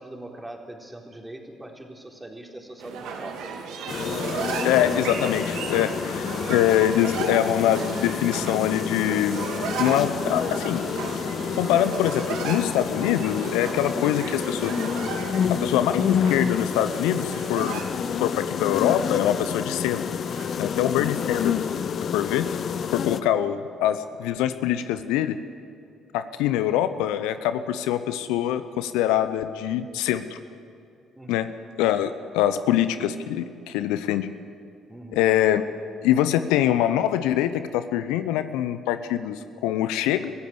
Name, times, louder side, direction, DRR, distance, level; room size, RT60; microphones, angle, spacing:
voice 1, 0.0-3.6 6.2-6.3 31.2-31.5 34.9-35.3, right 1 dB, 15° right, 1 dB, 4.0 m, -41 dB
sound 1, 2.8-21.7, right 6 dB, 70° right, 2.3 m, -35 dB
sound 2, 3.9-23.2, left 7 dB, 50° left, 0.9 m, -29 dB
voice 2, 4.6-6.2 6.5-9.5 9.8-10.9 11.6-14.7 15.6-17.8 18.2-20.0 20.6-21.6 22.1-22.6 22.9-25.4 26.1-30.4 31.3-31.5 31.8-34.3 35.1-35.6 36.0-40.3, left 11 dB, 75° left, 12 dB, 0.7 m, -24 dB
23.5 x 15.5 x 8.1 m, 2.5 s
hypercardioid pair, 50°, 0 cm